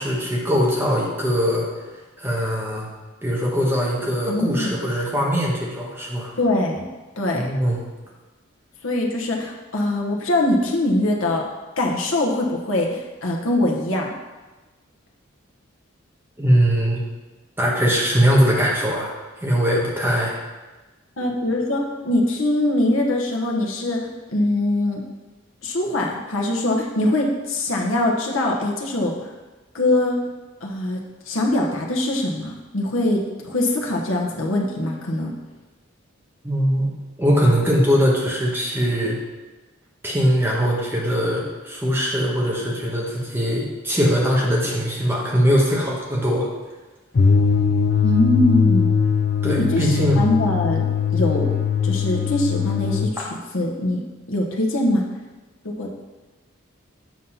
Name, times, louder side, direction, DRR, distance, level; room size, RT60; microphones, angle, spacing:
voice 1, 0.0-1.7 2.2-2.9 3.2-6.3 7.3-7.8 16.4-17.0 17.6-19.1 19.4-20.3 36.4-39.2 40.0-46.5 49.4-50.2, equal, 10° right, -4 dB, 1.2 m, -21 dB
voice 2, 4.3-4.8 6.4-6.9 7.2-7.5 8.8-11.5 11.8-14.1 21.2-25.0 25.6-29.3 29.7-30.2 30.6-35.3 48.0-48.9 49.5-50.8 51.1-51.5 51.8-53.1 53.5-54.0 54.3-55.1 55.6-56.1, left 1 dB, 80° left, 0 dB, 1.1 m, -22 dB
sound 1, 47.1-53.1, left 6 dB, 50° left, 0.4 m, -20 dB
7.4 x 4.0 x 5.7 m, 1.2 s
head